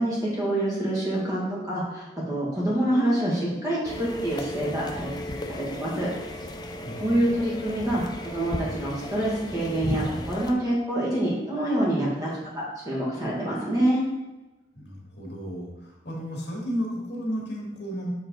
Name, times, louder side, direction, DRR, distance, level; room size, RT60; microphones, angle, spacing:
voice 1, 0.0-6.1 6.9-12.3 12.5-14.0, right 1 dB, 20° right, -6 dB, 1.8 m, -26 dB
sound 1, 3.8-10.5, left 1 dB, 25° left, 0.5 m, -35 dB
voice 2, 14.7-18.1, equal, 70° left, -2 dB, 1.8 m, -33 dB
7.1 x 3.7 x 3.9 m, 1.1 s
head